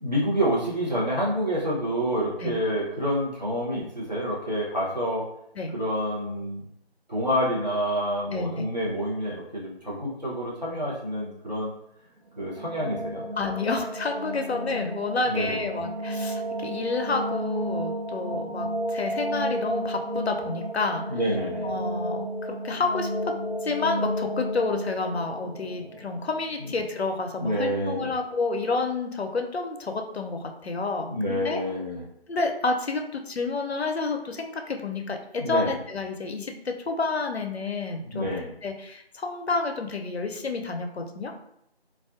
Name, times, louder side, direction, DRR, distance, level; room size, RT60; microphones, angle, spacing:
voice 1, 0.0-5.2 5.7-6.6 7.1-11.7 12.4-13.2 15.3-15.6 21.1-21.7 27.4-28.1 31.1-32.0 35.4-35.7 38.0-38.5, equal, 40° right, -6 dB, 0.7 m, -28 dB
voice 2, 8.3-8.7 13.3-21.0 21.6-31.6 32.3-38.3 38.6-41.3, left 3 dB, 75° left, 4 dB, 0.5 m, -29 dB
sound 1, 12.3-27.2, equal, 80° right, 0.5 m, -32 dB
2.3 x 2.2 x 2.4 m, 0.76 s
figure-of-eight pair, 170°, 32 cm